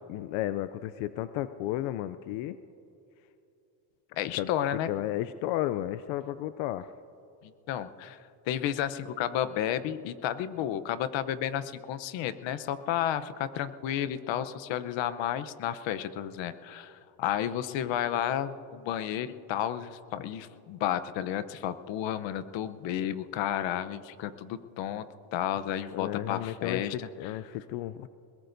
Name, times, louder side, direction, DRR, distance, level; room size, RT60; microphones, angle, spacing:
voice 1, 0.1-2.6 4.3-6.9 25.9-28.1, left 14 dB, 90° left, 13 dB, 0.6 m, -33 dB
voice 2, 4.2-4.9 7.4-8.2 8.5-25.1 25.3-27.1, left 10 dB, 70° left, 13 dB, 0.9 m, -32 dB
22.5 x 21.0 x 2.7 m, 2.8 s
cardioid pair, 115°, 47 cm